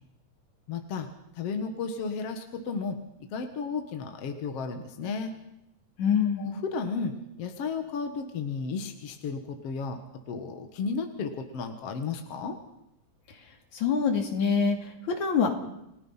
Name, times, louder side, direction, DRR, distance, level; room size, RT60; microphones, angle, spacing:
voice 1, 0.7-1.1 1.4-3.0 3.3-5.3 6.4-10.0 10.3-12.6, left 5 dB, 55° left, 5 dB, 2.4 m, -33 dB
voice 2, 6.0-6.5 13.7-15.5, left 6 dB, 75° left, 3 dB, 4.1 m, -25 dB
29.5 x 19.5 x 5.7 m, 0.85 s
omnidirectional pair, 3.4 m